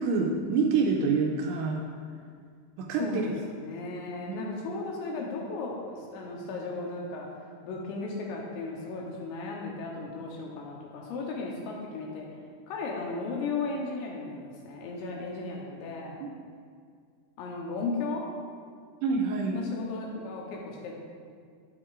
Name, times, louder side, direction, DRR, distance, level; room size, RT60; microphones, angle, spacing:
voice 1, 0.0-1.8 2.8-3.3 4.3-4.4 19.0-19.6, right 4 dB, 85° right, 0 dB, 2.7 m, -26 dB
voice 2, 3.0-7.3 7.6-12.3 12.7-16.2 17.4-18.3 19.5-20.9, left 3 dB, 75° left, -2 dB, 2.9 m, -35 dB
9.7 x 9.3 x 2.5 m, 2.1 s
omnidirectional pair, 5.6 m